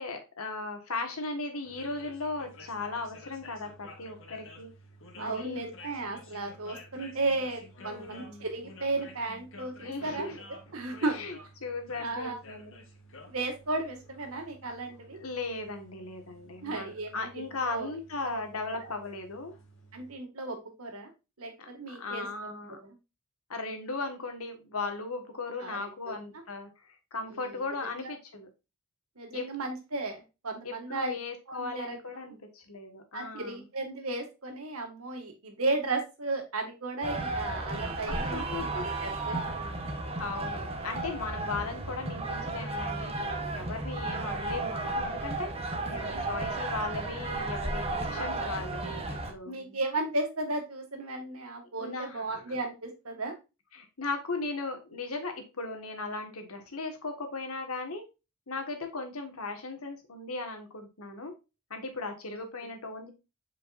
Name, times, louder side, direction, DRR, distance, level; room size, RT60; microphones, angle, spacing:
voice 1, 0.0-4.7 5.1-5.7 7.8-8.4 9.8-10.4 11.1-11.4 11.6-12.7 15.2-19.5 21.6-22.8 23.5-28.5 29.3-29.7 30.6-33.6 37.8-38.9 40.2-49.8 51.8-52.6 53.7-58.0 58.5-61.3 61.7-63.1, left 3 dB, 85° left, 5 dB, 1.6 m, -37 dB
sound 1, 1.6-20.1, left 1 dB, 60° left, 1.6 m, -52 dB
voice 2, 5.2-10.4 10.7-11.5 12.0-12.4 13.3-15.2 16.6-17.9 18.2-18.4 19.9-21.1 21.4-23.0 25.6-26.2 27.3-27.6 29.2-31.2 31.5-32.0 32.2-32.3 33.1-38.7 39.0-39.8 45.8-46.2 48.2-48.4 49.5-53.4 62.6-62.7, right 2 dB, 85° right, 3 dB, 2.0 m, -35 dB
sound 2, 37.0-49.3, right 2 dB, 30° right, 1.0 m, -34 dB
7.2 x 5.1 x 2.5 m, 0.27 s
head